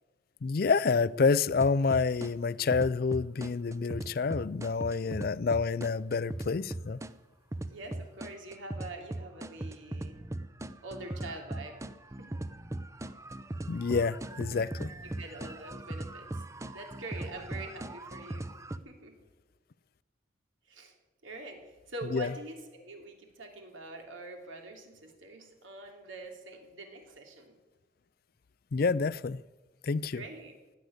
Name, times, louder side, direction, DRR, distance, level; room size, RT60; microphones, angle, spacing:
voice 1, 0.4-7.0 13.7-14.9 22.1-22.3 28.7-29.4 29.8-30.2, left 4 dB, 50° left, 0.4 m, -28 dB
sound 1, 1.6-2.3 2.7-7.1 7.5-18.8, right 1 dB, 15° right, 0.5 m, -39 dB
voice 2, 7.7-10.1 10.8-11.8 12.2-12.4 15.1-16.5 16.7-18.5 18.8-19.2 20.6-20.9 21.2-27.6 30.1-30.5, right 2 dB, 80° right, 3.0 m, -44 dB
16.0 x 9.7 x 8.1 m
head